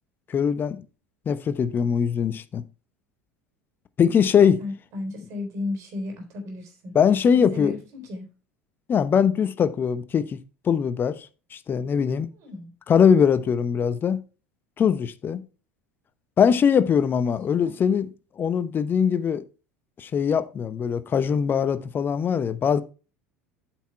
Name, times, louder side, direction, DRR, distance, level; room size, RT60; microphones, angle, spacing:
voice 1, 0.3-0.8 1.3-2.6 4.0-4.6 6.9-7.7 8.9-10.4 10.6-12.3 12.9-14.2 14.8-15.4 16.4-18.1 18.4-19.4 20.0-22.8, left 7 dB, 30° left, 0.9 m, -21 dB
voice 2, 4.3-7.0 7.3-8.2 12.3-12.7 17.2-17.3 17.6-17.8, left 2 dB, 50° right, 3.8 m, -34 dB
8.3 x 6.1 x 4.5 m
hypercardioid pair, 75°, 7 cm